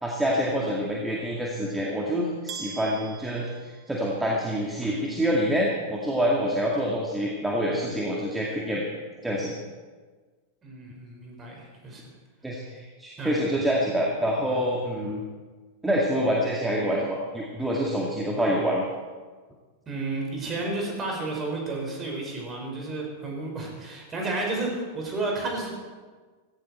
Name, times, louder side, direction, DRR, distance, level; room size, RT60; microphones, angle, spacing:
voice 1, 0.0-8.9 9.2-9.5 12.4-15.2 15.8-18.9, equal, 5° right, -3 dB, 2.1 m, -26 dB
sound 1, 2.5-4.5, right 8 dB, 40° right, 1.2 m, -42 dB
voice 2, 10.6-12.0 13.2-13.4 19.9-25.7, right 2 dB, 25° right, 0 dB, 5.3 m, -32 dB
16.5 x 15.5 x 4.5 m, 1.4 s
figure-of-eight pair, 90°, 0 cm